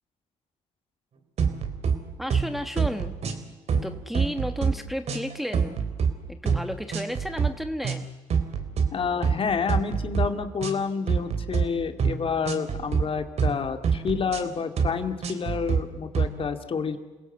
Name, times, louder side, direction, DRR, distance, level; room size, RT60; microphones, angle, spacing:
sound 1, 1.4-2.0 2.3-2.5 2.8-3.4 3.7-4.7 5.1-6.1 6.5-6.6 6.9-7.5 7.8-8.0 8.3-8.9 9.2-9.4 9.7-10.3 10.6-10.8 11.1-11.6 12.0-12.2 12.5-13.0 13.4-13.6 13.8-14.4 14.8-14.9 15.2-15.8 16.1-16.3, right 6 dB, 55° right, 3.4 m, -25 dB
voice 1, 2.2-3.2 3.8-5.8 6.3-8.1, equal, ahead, 7 dB, 1.3 m, -32 dB
voice 2, 8.9-17.0, left 5 dB, 45° left, 7 dB, 2.3 m, -29 dB
29.0 x 17.0 x 8.1 m, 1.3 s
supercardioid pair, 80°, 13 cm